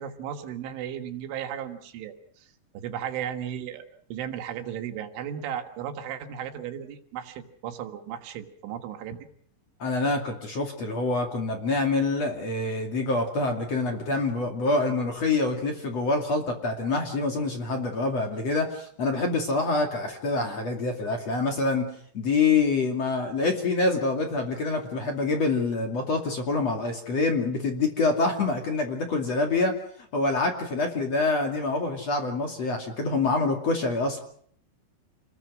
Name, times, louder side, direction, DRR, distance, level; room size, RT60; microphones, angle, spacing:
voice 1, 0.0-2.5 2.7-9.3, right 9 dB, 85° right, 5 dB, 4.1 m, -35 dB
voice 2, 9.8-21.9 22.1-29.7 30.1-34.2, left 3 dB, 40° left, 3 dB, 2.9 m, -26 dB
28.0 x 21.0 x 6.3 m, 0.63 s
omnidirectional pair, 5.4 m